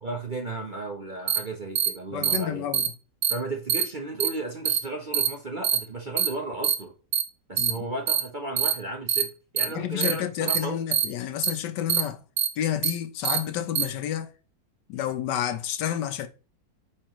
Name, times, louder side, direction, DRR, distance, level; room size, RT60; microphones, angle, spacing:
voice 1, 0.0-2.7 3.3-6.9 7.5-9.3 9.5-10.8, right 2 dB, 40° right, 0.7 m, -34 dB
sound 1, 1.3-1.4 1.8-1.9 2.2-2.4 2.7-2.9 3.2-3.3 3.7-3.8 4.2-4.3 4.7-4.8 5.1-5.3 5.6-5.8 6.2-6.3 6.6-6.7 7.1-7.2 7.6-7.7 8.1-8.2 8.6-8.7 9.1-9.2 9.6-9.7 10.0-10.1 10.5-10.6 10.9-11.1 11.4-11.5 11.9-12.0 12.4-12.5 12.8-12.9 13.2-13.4 13.8-13.9, right 9 dB, 70° right, 1.3 m, -23 dB
voice 2, 2.1-2.9 7.6-7.8 9.7-12.2 12.6-14.3 14.9-16.3, left 10 dB, 75° left, 1.3 m, -30 dB
8.6 x 5.4 x 3.0 m
omnidirectional pair, 1.9 m